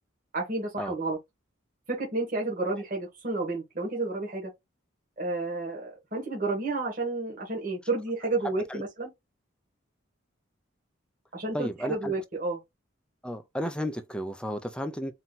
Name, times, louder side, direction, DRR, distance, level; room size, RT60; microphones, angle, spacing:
voice 1, 0.3-1.2 1.9-4.5 5.2-9.1 11.3-12.6, right 3 dB, 45° right, 2.0 m, -31 dB
voice 2, 8.4-8.8 11.5-12.1 13.2-15.1, equal, 5° left, 0.6 m, -33 dB
4.5 x 2.9 x 4.0 m
head